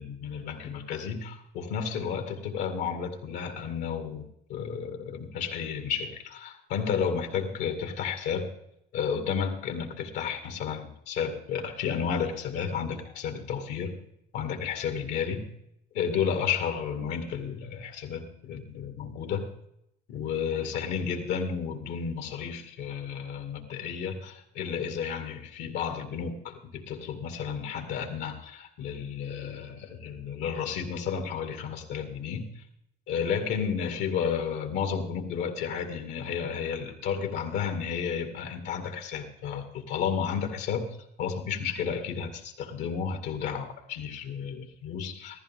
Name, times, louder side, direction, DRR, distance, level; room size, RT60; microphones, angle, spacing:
voice 1, 0.0-8.5 8.9-14.0 14.3-15.5 15.9-19.5 20.1-32.6 33.1-45.4, left 7 dB, 85° left, 5 dB, 2.3 m, -32 dB
14.5 x 14.5 x 3.7 m, 0.78 s
cardioid pair, 110°, 17 cm